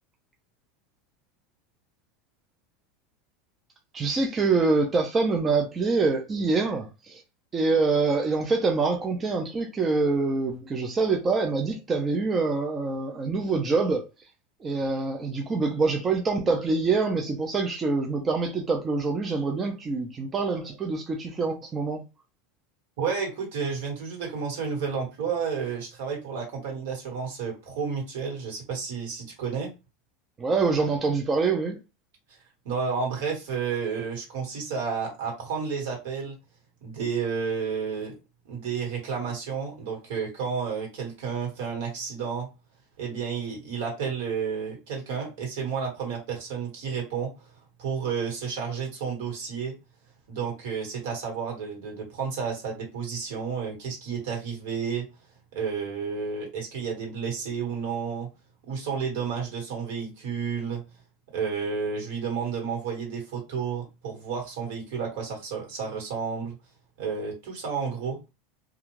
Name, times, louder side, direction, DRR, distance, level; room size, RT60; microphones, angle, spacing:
voice 1, 3.9-7.2 7.5-14.0 14.6-22.0 30.4-31.8, right 4 dB, 20° right, 0.4 m, -25 dB
voice 2, 23.0-29.7 32.6-36.4 36.8-38.1 38.4-42.5 43.0-47.3 47.8-49.7 50.3-55.0 55.5-58.3 58.7-60.8 61.3-66.5 67.0-68.2, right 6 dB, 70° right, 1.4 m, -31 dB
2.4 x 2.2 x 3.0 m
supercardioid pair, 155°, 0 cm